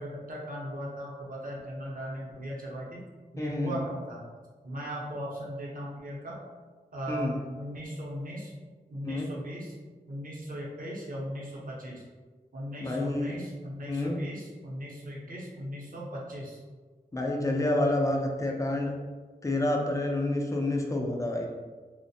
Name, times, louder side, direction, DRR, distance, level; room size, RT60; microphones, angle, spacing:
voice 1, 0.0-3.1 3.3-4.2 4.6-6.4 6.9-8.5 8.9-9.8 10.1-12.0 12.5-16.6, equal, 60° right, -4 dB, 0.7 m, -38 dB
voice 2, 3.4-3.8 7.1-7.4 9.0-9.3 12.8-13.4 13.9-14.2 17.1-18.9 19.4-21.5, left 1 dB, 20° left, 1 dB, 0.4 m, -28 dB
2.4 x 2.1 x 2.7 m, 1.4 s
cardioid pair, 45°, 16 cm